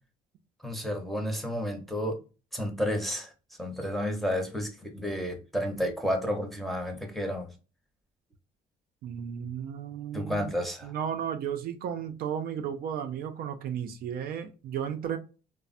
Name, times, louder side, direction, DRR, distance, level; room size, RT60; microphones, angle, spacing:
voice 1, 0.6-2.2 2.5-3.3 3.6-7.5 10.1-10.9, equal, ahead, 0.7 m, -31 dB
voice 2, 9.0-10.5 10.8-15.2, right 8 dB, 65° right, 0.4 m, -34 dB
3.2 x 2.0 x 2.4 m
cardioid pair, 110°, 17 cm